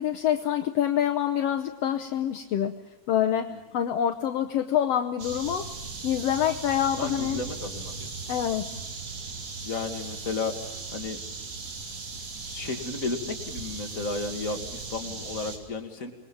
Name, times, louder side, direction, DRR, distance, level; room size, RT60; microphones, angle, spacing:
voice 1, 0.0-2.7 3.1-5.7 6.0-7.4 8.3-8.7, left 10 dB, 70° left, 7 dB, 1.8 m, -26 dB
sound 1, 5.2-15.6, right 4 dB, 65° right, 4.2 m, -38 dB
voice 2, 7.0-8.1 8.7-8.8 9.6-11.2 12.5-16.1, left 3 dB, 30° left, 2 dB, 2.7 m, -33 dB
27.0 x 21.5 x 7.2 m, 1.2 s
omnidirectional pair, 3.3 m